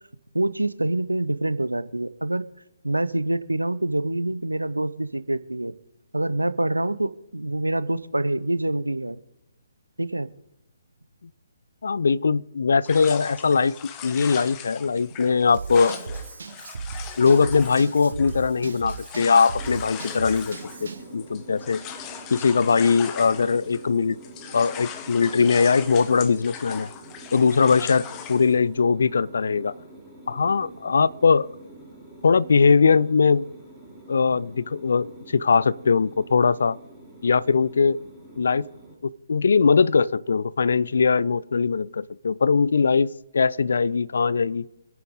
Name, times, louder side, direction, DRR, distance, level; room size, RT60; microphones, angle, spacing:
voice 1, 0.3-2.5 2.8-5.7 6.1-9.2 10.0-10.3, right 1 dB, 80° right, 0.7 m, -26 dB
voice 2, 11.8-16.0 17.2-21.8 22.3-24.2 24.5-26.9 27.3-29.7 30.3-31.5 32.2-33.5 34.1-36.8 37.2-38.0 38.4-38.7 39.0-44.7, left 5 dB, 55° left, 0.4 m, -21 dB
sound 1, 12.9-24.0 24.2-28.5, left 8 dB, 20° left, 1.0 m, -39 dB
Drum kit / Drum, 15.5-21.1, right 4 dB, 55° right, 1.4 m, -37 dB
sound 2, 19.6-39.0, right 1 dB, 5° left, 3.0 m, -46 dB
25.5 x 9.3 x 3.7 m
figure-of-eight pair, 135°, 0 cm